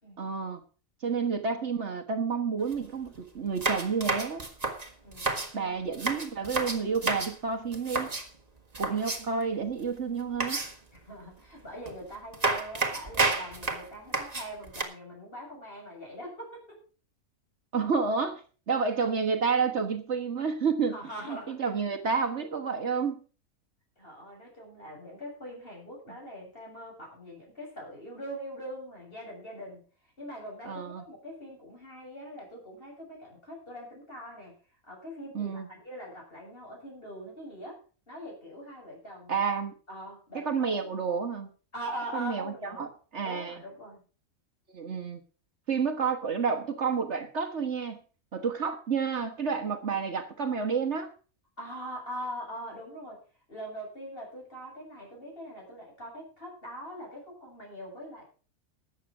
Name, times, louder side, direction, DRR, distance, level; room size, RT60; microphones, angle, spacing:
voice 1, 0.2-0.6 1.0-4.5 5.5-8.1 8.8-10.6 17.7-21.0 21.2-23.2 30.6-31.0 35.3-35.7 39.3-39.7 40.3-41.5 42.1-43.6 44.7-45.2 45.7-48.0 48.3-51.1, right 5 dB, 55° right, 6 dB, 1.6 m, -30 dB
sound 1, 2.6-2.8 3.1-3.2 3.6-5.5 5.9-7.3 7.7-8.3 8.7-9.4 10.4-11.0 11.9-12.0 12.3-14.8, right 3 dB, 30° right, 1.9 m, -30 dB
voice 2, 5.0-5.7 11.0-16.8 20.9-21.6 24.0-29.8 30.2-34.5 34.9-37.8 38.1-39.4 39.9-40.8 41.7-42.8 43.2-44.0 51.6-53.2 53.5-58.2, equal, 40° left, -2 dB, 7.5 m, -42 dB
13.0 x 8.3 x 6.0 m, 0.38 s
omnidirectional pair, 1.4 m